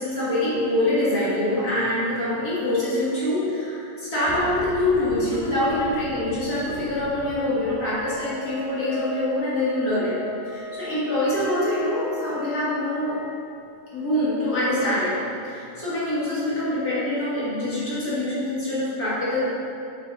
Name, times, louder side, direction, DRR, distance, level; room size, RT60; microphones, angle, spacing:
voice 1, 0.0-10.2 10.4-13.2 13.9-19.4, left 1 dB, 40° left, -10 dB, 1.4 m, -25 dB
Boom, 4.3-9.0 9.3-9.4 10.5-10.6, right 3 dB, 85° right, 2.8 m, -41 dB
Wind instrument woodwind instrument, 8.1-13.4, left 5 dB, 85° left, 4.1 m, -37 dB
7.8 x 6.6 x 4.2 m, 2.6 s
omnidirectional pair, 4.9 m